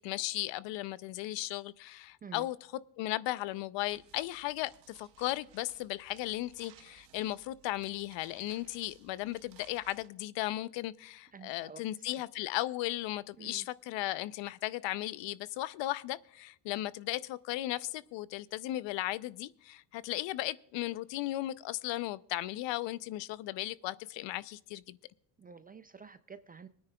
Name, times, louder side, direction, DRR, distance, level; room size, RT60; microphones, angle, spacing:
voice 1, 0.0-2.6 3.0-25.0, left 16 dB, 60° left, 0.6 m, -36 dB
sound 1, 3.9-10.1, right 11 dB, 60° right, 1.3 m, -60 dB
voice 2, 11.3-12.1 13.4-13.7 25.4-26.7, right 6 dB, 20° right, 0.3 m, -50 dB
24.5 x 9.7 x 2.2 m
supercardioid pair, 95°, 50 cm